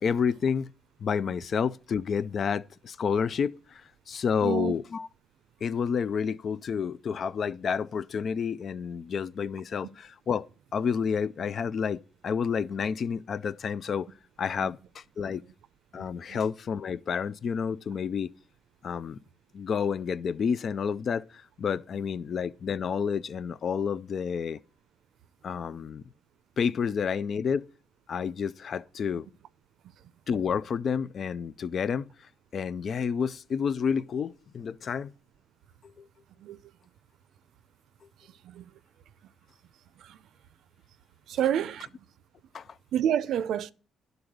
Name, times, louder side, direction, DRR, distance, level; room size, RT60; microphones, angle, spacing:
voice 1, 0.0-0.7 1.0-3.8 4.1-5.1 5.6-10.5 10.7-14.1 14.4-15.4 15.9-18.3 18.8-19.2 19.5-24.6 25.4-26.0 26.6-27.7 28.1-29.3 30.3-32.1 32.5-35.1 42.5-42.6, left 6 dB, 55° left, 0.4 m, -29 dB
voice 2, 4.4-4.7 14.6-14.7 15.9-16.4 36.4-36.6 38.4-38.7 40.0-40.2 41.3-42.1 42.9-43.7, right 10 dB, 75° right, 0.5 m, -30 dB
11.0 x 4.0 x 7.8 m
cardioid pair, 90°, 0 cm